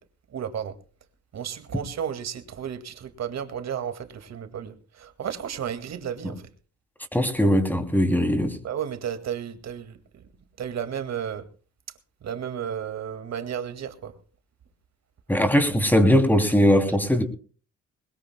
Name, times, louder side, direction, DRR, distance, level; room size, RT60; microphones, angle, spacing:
voice 1, 0.3-0.7 1.3-6.4 8.6-10.0 10.6-11.4 12.2-14.1, right 8 dB, 60° right, 2.1 m, -33 dB
voice 2, 7.1-8.6 15.3-17.2, equal, 5° left, 2.9 m, -20 dB
21.0 x 20.0 x 2.2 m
cardioid pair, 90°, 30 cm